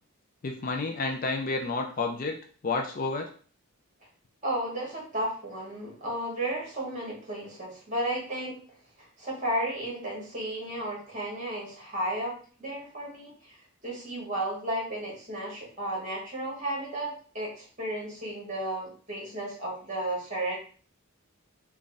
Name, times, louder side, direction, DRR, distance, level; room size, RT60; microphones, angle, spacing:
voice 1, 0.4-2.4 2.6-3.3, left 3 dB, 40° left, 3 dB, 0.4 m, -30 dB
voice 2, 4.4-8.5 9.0-12.3 12.6-20.6, right 1 dB, 35° right, -3 dB, 1.6 m, -33 dB
3.6 x 2.3 x 3.9 m, 0.42 s
head